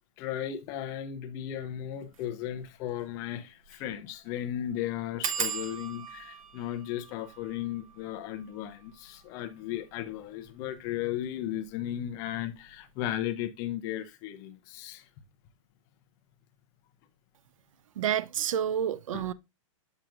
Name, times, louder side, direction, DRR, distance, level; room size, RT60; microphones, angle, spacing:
voice 1, 0.2-15.1 19.1-19.3, left 11 dB, 20° left, 0.5 m, -35 dB
sound 1, 2.0-2.2 2.7-2.8 3.0-3.1 3.6-3.9 4.1-4.2 5.2-10.5 11.2-11.7 12.0-12.4 12.6-12.7, right 6 dB, 90° right, 1.1 m, -39 dB
voice 2, 18.0-19.3, right 9 dB, 75° right, 0.4 m, -29 dB
7.7 x 5.7 x 2.5 m
hypercardioid pair, 165°, 17 cm